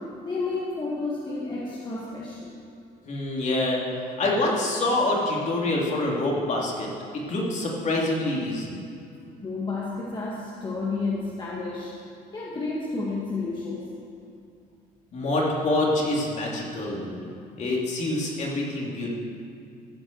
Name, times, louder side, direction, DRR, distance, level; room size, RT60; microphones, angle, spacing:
voice 1, 0.0-2.5 9.4-12.0 12.3-14.0, left 3 dB, 25° left, -5 dB, 1.8 m, -31 dB
voice 2, 3.1-3.8 4.2-6.9 7.3-8.8 15.1-17.2 17.6-19.1, left 2 dB, 45° left, -3 dB, 2.9 m, -26 dB
14.0 x 6.2 x 8.0 m, 2.5 s
cardioid pair, 110°, 17 cm